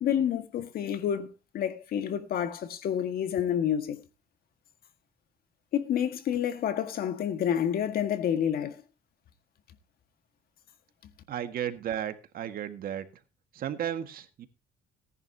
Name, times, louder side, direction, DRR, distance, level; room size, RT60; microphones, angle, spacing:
voice 1, 0.0-4.0 5.7-8.8, left 9 dB, 60° left, 1.8 m, -29 dB
voice 2, 11.3-13.1 13.5-14.5, right 10 dB, 60° right, 1.8 m, -34 dB
18.5 x 10.5 x 2.8 m
cardioid pair, 110°, 17 cm